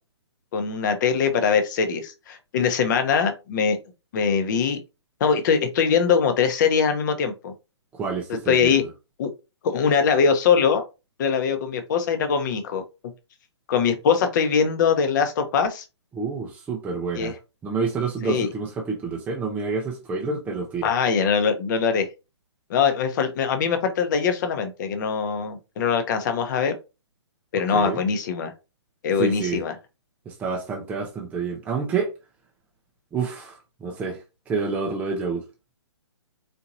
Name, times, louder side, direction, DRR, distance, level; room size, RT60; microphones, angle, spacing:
voice 1, 0.5-3.8 4.1-4.8 5.2-7.5 8.5-8.8 9.2-9.3 9.6-10.8 11.2-12.8 13.7-15.8 17.1-17.3 18.2-18.5 20.8-22.1 22.7-26.7 27.5-28.5 29.0-29.7, left 6 dB, 40° left, 0.8 m, -22 dB
voice 2, 7.9-8.9 16.1-17.3 17.6-20.9 27.5-28.0 29.2-29.6 30.3-32.1 33.1-34.2 34.5-35.4, right 4 dB, 10° right, 0.6 m, -28 dB
4.3 x 2.8 x 2.6 m
hypercardioid pair, 140°, 15 cm